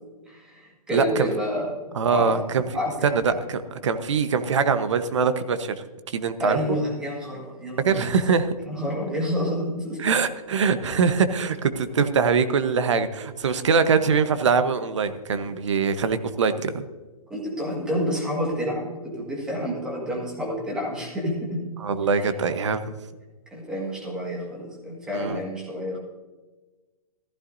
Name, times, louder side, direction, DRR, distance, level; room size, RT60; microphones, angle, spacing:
voice 1, 0.3-2.4 2.7-3.4 6.4-8.1 8.7-10.1 17.3-21.7 22.2-22.3 23.5-26.0, equal, 5° right, -3 dB, 1.8 m, -29 dB
voice 2, 0.9-1.3 1.9-2.6 3.0-5.7 6.1-6.6 7.8-8.5 10.0-16.9 21.8-22.8 25.1-25.4, right 5 dB, 50° right, 10 dB, 1.0 m, -23 dB
15.0 x 14.0 x 2.7 m, 1.2 s
hypercardioid pair, 175°, 19 cm